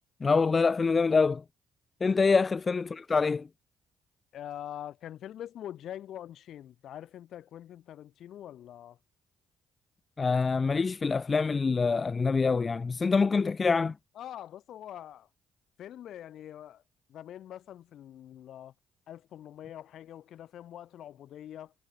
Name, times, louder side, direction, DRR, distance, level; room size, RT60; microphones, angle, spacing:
voice 1, 0.2-1.4 2.0-3.5 10.2-13.9, left 4 dB, 35° left, 1.2 m, -25 dB
voice 2, 4.3-9.0 14.1-15.3 15.8-16.8 17.1-18.7 19.1-21.7, left 11 dB, 65° left, 4.3 m, -44 dB
hypercardioid pair, 50°, 0 cm